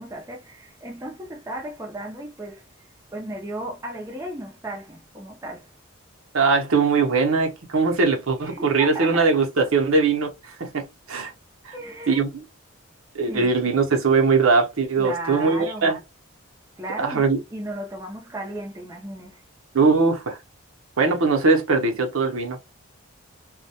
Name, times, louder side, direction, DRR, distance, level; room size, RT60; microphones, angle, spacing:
voice 1, 0.0-2.6 3.1-5.7 8.4-9.3 11.7-12.2 13.3-13.7 15.0-15.9 16.8-19.5, right 1 dB, 15° right, 0.4 m, -35 dB
voice 2, 6.3-11.3 11.6-11.8 12.1-12.4 13.1-16.0 17.0-17.4 19.7-20.4 21.0-22.6, right 4 dB, 75° right, 0.7 m, -21 dB
2.2 x 2.1 x 2.7 m
head